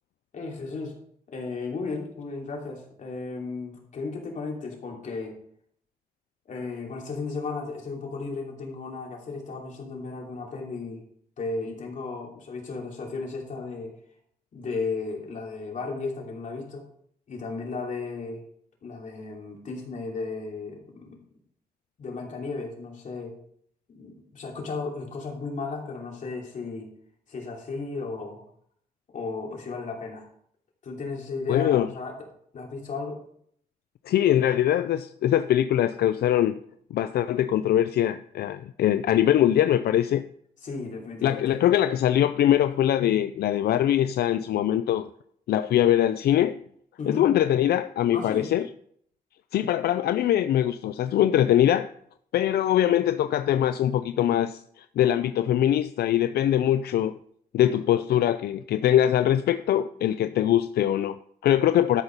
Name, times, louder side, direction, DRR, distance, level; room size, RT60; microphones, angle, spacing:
voice 1, 0.3-1.0 1.3-5.4 6.5-11.0 11.4-13.9 14.5-16.8 17.3-18.4 18.8-21.2 22.0-23.3 23.9-26.9 27.3-28.4 29.1-30.3 30.8-32.1 32.5-33.2 40.6-41.6 47.0-47.3 48.1-48.5, left 4 dB, 50° left, -1 dB, 2.9 m, -34 dB
voice 2, 31.5-31.9 34.1-36.6 36.9-40.3 41.2-45.1 45.5-46.6 47.1-48.6 49.5-51.9 52.3-57.2 57.5-62.0, left 11 dB, 85° left, 11 dB, 0.4 m, -22 dB
12.5 x 5.6 x 5.2 m, 0.65 s
wide cardioid pair, 145°, 16 cm